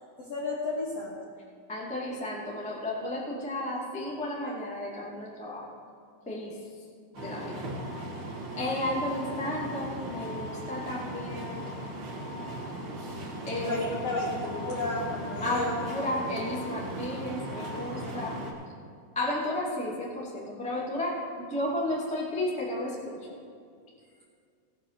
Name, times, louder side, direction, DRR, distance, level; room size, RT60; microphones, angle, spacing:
voice 1, 0.2-1.2 13.6-15.7, left 2 dB, 65° left, -3 dB, 1.6 m, -32 dB
voice 2, 1.7-5.7 6.2-6.6 7.2-7.6 8.6-11.7 13.5-13.9 15.4-18.4 19.1-23.2, left 1 dB, 10° left, -4 dB, 0.4 m, -33 dB
sound 1, 7.1-18.5, right 1 dB, 60° right, 1.2 m, -37 dB
16.5 x 6.8 x 5.9 m, 2.2 s
omnidirectional pair, 4.6 m